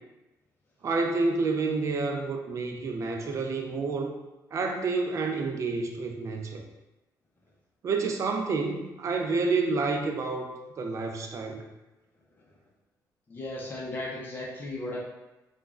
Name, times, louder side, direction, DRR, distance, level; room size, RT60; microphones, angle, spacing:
voice 1, 0.8-4.1 4.5-6.6 7.8-11.6, right 3 dB, 45° right, 3 dB, 0.4 m, -29 dB
voice 2, 13.3-15.0, left 1 dB, 30° left, -5 dB, 0.7 m, -36 dB
3.0 x 2.3 x 2.4 m, 1.0 s
cardioid pair, 105°, 7 cm